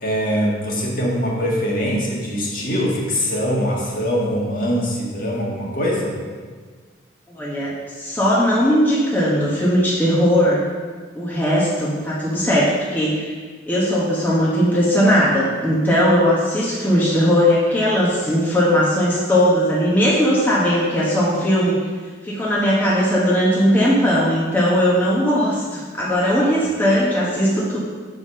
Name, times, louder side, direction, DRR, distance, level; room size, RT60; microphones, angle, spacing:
voice 1, 0.0-6.1, equal, 45° left, -3 dB, 1.5 m, -22 dB
voice 2, 7.3-10.7 11.1-13.3 13.7-21.7 22.2-27.8, equal, 10° left, -7 dB, 1.0 m, -18 dB
7.1 x 5.1 x 5.6 m, 1.6 s
head